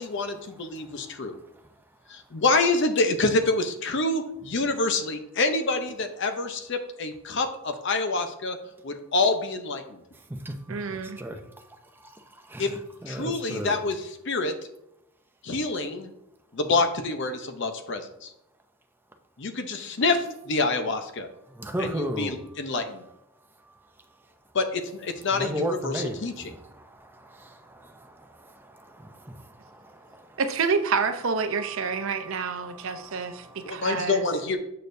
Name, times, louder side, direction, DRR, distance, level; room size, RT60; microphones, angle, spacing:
voice 1, 0.0-1.3 2.1-8.6 8.8-10.0 12.6-12.7 13.1-14.0 14.3-14.5 15.4-16.1 16.5-18.3 19.4-21.3 21.8-23.1 24.5-26.5 33.6-34.6, left 3 dB, 60° left, 7 dB, 0.7 m, -27 dB
voice 2, 0.7-1.7 10.1-13.8 21.5-22.4 23.6-24.0 25.3-30.4 31.5-33.9, equal, 10° right, 5 dB, 0.5 m, -37 dB
voice 3, 10.7-11.2 30.4-34.2, right 5 dB, 70° right, 9 dB, 0.6 m, -28 dB
6.6 x 6.4 x 2.6 m, 0.82 s
head